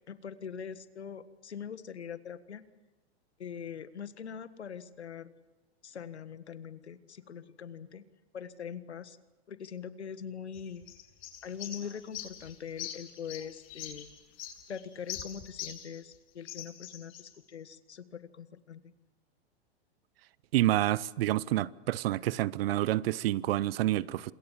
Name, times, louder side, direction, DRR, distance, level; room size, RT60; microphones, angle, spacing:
voice 1, 0.1-2.6 3.4-5.3 5.8-8.0 8.3-9.2 9.5-10.9 11.4-14.1 14.7-18.8, left 7 dB, 90° left, 1.6 m, -42 dB
sound 1, 10.5-16.1 16.4-17.4, left 10 dB, 40° left, 7.0 m, -43 dB
voice 2, 20.5-24.3, right 15 dB, 60° right, 0.9 m, -28 dB
27.5 x 22.0 x 7.4 m
hypercardioid pair, 110°, 32 cm